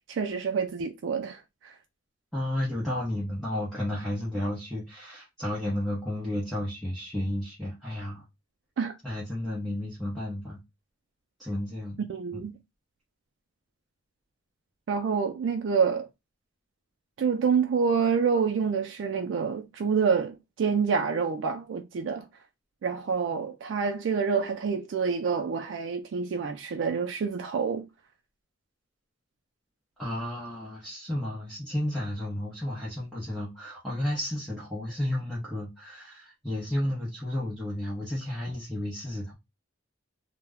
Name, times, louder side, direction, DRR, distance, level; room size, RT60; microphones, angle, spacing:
voice 1, 0.1-1.7 8.8-8.9 12.1-12.5 14.9-16.1 17.2-22.3 22.8-27.8, right 6 dB, 65° right, 0.3 m, -27 dB
voice 2, 2.3-8.2 9.0-10.6 11.4-12.0 12.3-12.4 30.0-39.3, left 1 dB, ahead, 0.6 m, -32 dB
2.1 x 2.1 x 3.4 m
head